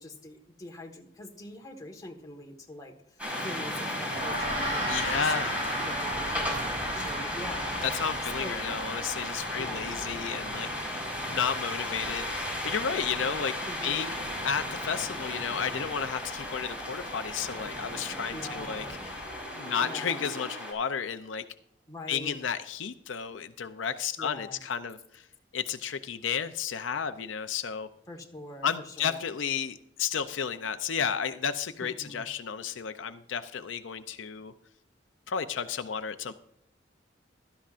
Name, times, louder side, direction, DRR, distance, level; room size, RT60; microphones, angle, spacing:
voice 1, 0.0-7.8 8.4-8.6 9.5-9.9 13.6-14.1 18.3-19.0 19.8-20.2 21.9-22.4 24.2-24.6 28.1-29.2 31.8-32.2, left 1 dB, 20° left, 1 dB, 1.5 m, -44 dB
sound 1, 3.2-20.7, left 1 dB, 10° right, 4.7 m, -35 dB
Gong, 4.1-13.7, right 1 dB, 35° right, 5.4 m, -37 dB
voice 2, 4.8-5.6 7.8-11.0 11.3-13.5 13.8-14.1 14.4-19.1 19.5-21.4 22.1-25.3 25.5-27.9 28.6-34.5 35.3-36.3, left 7 dB, 75° left, 10 dB, 0.5 m, -32 dB
16.0 x 13.0 x 2.5 m, 0.73 s
head